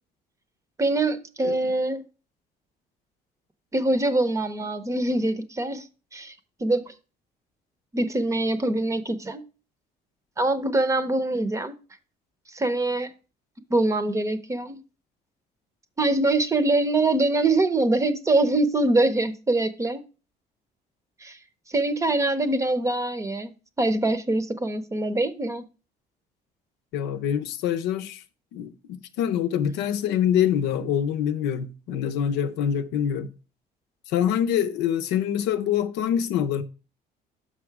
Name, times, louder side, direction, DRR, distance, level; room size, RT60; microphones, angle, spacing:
voice 1, 0.8-2.0 3.7-5.9 6.1-6.3 6.6-6.9 7.9-9.4 10.4-11.8 12.5-13.1 13.7-14.8 16.0-20.0 21.2-21.4 21.7-25.6, right 2 dB, 20° right, 0.7 m, -24 dB
voice 2, 26.9-28.2 28.5-33.3 34.1-36.6, left 9 dB, 90° left, 0.6 m, -25 dB
6.1 x 5.8 x 4.6 m
cardioid pair, 110°, 17 cm